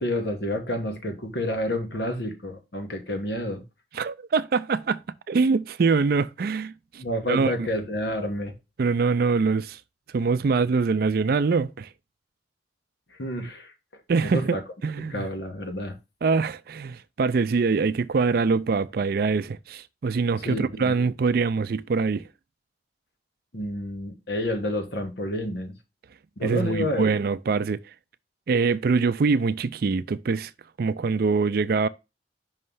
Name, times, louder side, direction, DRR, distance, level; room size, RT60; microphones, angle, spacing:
voice 1, 0.0-3.6 7.0-8.5 13.2-13.7 14.2-14.6 15.1-16.0 20.4-20.9 23.5-25.7 26.4-27.1, left 1 dB, 65° left, 1.4 m, -29 dB
voice 2, 3.9-5.0 5.3-7.0 7.3-7.6 8.8-9.8 10.1-11.9 14.1-14.6 14.8-15.3 16.2-22.2 26.4-27.8 28.5-30.5 30.8-31.9, right 4 dB, 55° right, 0.4 m, -24 dB
5.6 x 3.2 x 5.5 m
head